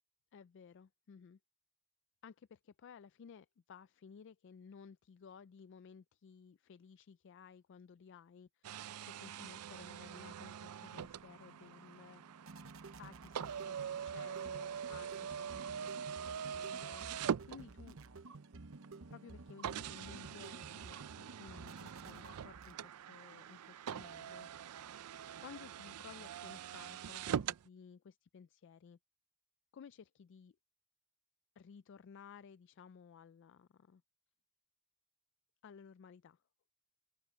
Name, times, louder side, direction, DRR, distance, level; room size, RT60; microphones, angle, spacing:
voice 1, 0.3-1.4 2.2-12.5 13.0-16.2 16.5-18.0 19.1-25.1 25.4-29.0 29.7-30.5 31.6-34.0 35.6-36.4, left 6 dB, 55° left, 0.3 m, -57 dB
sound 1, 8.6-18.1 18.8-18.9 19.6-27.7, right 8 dB, 85° right, 0.4 m, -43 dB
sound 2, 10.7-23.2, right 3 dB, 65° right, 0.9 m, -54 dB
open air
head